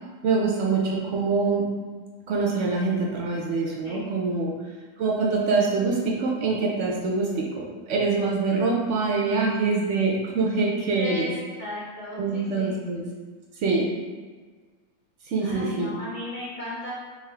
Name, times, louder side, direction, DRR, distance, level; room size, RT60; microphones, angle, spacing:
voice 1, 0.2-1.7 2.3-4.5 5.0-11.3 12.2-13.0 13.6-13.9 15.3-15.9, right 4 dB, 70° right, -2 dB, 0.7 m, -24 dB
voice 2, 11.0-12.8 15.4-16.9, left 1 dB, 65° left, -7 dB, 0.4 m, -35 dB
3.6 x 3.0 x 3.3 m, 1.4 s
omnidirectional pair, 1.7 m